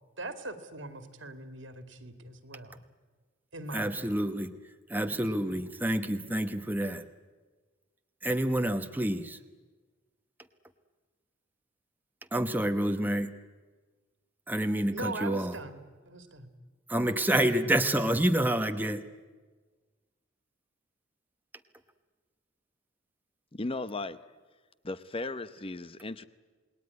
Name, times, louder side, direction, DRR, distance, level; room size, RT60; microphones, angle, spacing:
voice 1, 0.2-2.8 3.5-4.3 4.9-5.6 14.9-15.8 16.0-16.5, right 2 dB, 70° right, 9 dB, 2.4 m, -41 dB
voice 2, 3.7-4.6 4.9-7.1 8.2-9.4 12.3-13.3 14.5-15.6 16.9-19.1, right 1 dB, 10° right, 7 dB, 1.0 m, -28 dB
voice 3, 23.5-24.2 24.8-26.2, left 2 dB, 30° left, 13 dB, 0.8 m, -36 dB
28.5 x 20.0 x 9.7 m, 1.3 s
head